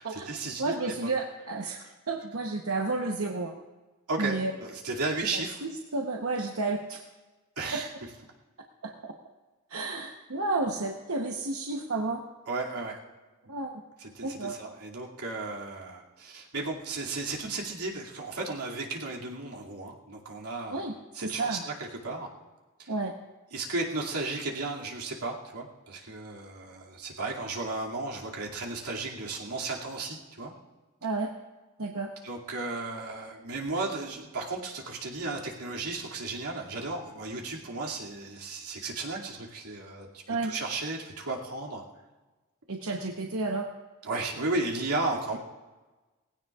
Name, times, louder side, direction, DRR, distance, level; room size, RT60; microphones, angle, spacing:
voice 1, 0.0-1.1 4.1-5.6 7.6-7.9 12.5-13.0 14.0-20.8 21.1-22.3 22.8-22.9 23.5-30.5 32.2-41.8 44.0-45.4, right 3 dB, 90° right, -3 dB, 2.5 m, -34 dB
voice 2, 0.6-3.5 4.2-4.5 5.3-7.0 7.7-7.8 8.8-9.1 9.7-12.2 13.5-13.7 14.2-14.6 20.7-21.6 22.9-23.1 31.0-31.3 31.8-32.1 40.3-40.5 42.7-43.7, right 3 dB, 65° right, 1 dB, 1.0 m, -31 dB
19.5 x 16.5 x 2.4 m, 1.2 s
head